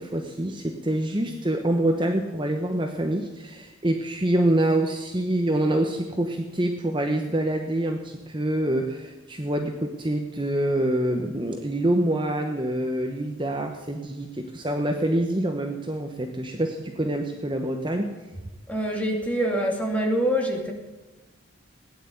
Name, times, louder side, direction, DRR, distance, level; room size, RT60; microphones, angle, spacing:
voice 1, 0.0-18.1, right 1 dB, 25° right, 3 dB, 1.0 m, -26 dB
voice 2, 18.7-20.7, equal, 5° left, 0 dB, 2.4 m, -25 dB
17.0 x 10.0 x 8.3 m, 1.1 s
head